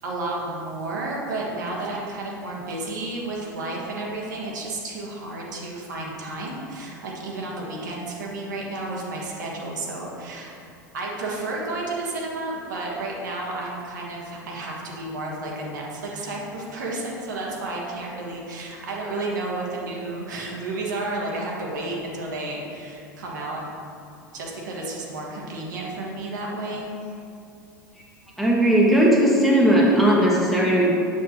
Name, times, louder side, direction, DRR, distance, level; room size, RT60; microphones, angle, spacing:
voice 1, 0.0-10.5 10.9-23.6 24.3-26.8, right 2 dB, 70° right, -3 dB, 1.3 m, -31 dB
voice 2, 28.4-30.9, right 1 dB, ahead, -5 dB, 1.3 m, -17 dB
7.4 x 6.2 x 2.9 m, 2.6 s
figure-of-eight pair, 85°, 10 cm